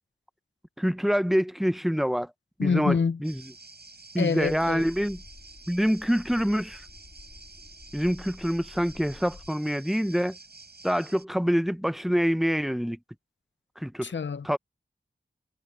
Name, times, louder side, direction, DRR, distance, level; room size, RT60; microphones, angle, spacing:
voice 1, 0.8-2.3 2.6-3.4 4.1-5.2 5.7-6.8 7.9-10.4 10.8-13.0 13.8-14.1 14.4-14.6, equal, ahead, 0.7 m, -26 dB
voice 2, 2.6-3.2 4.2-4.8 14.0-14.6, left 5 dB, 80° left, 0.8 m, -26 dB
sound 1, 3.2-11.3, right 3 dB, 60° right, 7.0 m, -49 dB
sound 2, 4.4-9.5, left 3 dB, 55° left, 3.2 m, -50 dB
wide cardioid pair, 70°, 19 cm